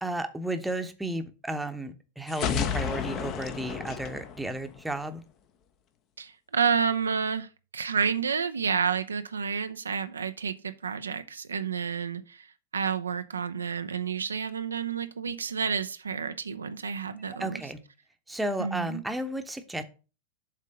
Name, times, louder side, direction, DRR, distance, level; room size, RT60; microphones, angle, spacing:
voice 1, 0.0-5.2 17.4-17.8 18.3-19.8, right 1 dB, 5° right, 0.9 m, -33 dB
sound 1, 2.3-5.1, left 8 dB, 35° left, 0.8 m, -32 dB
voice 2, 6.2-17.7 18.6-19.0, right 6 dB, 75° right, 0.5 m, -30 dB
7.5 x 3.7 x 6.5 m
figure-of-eight pair, 90°, 0 cm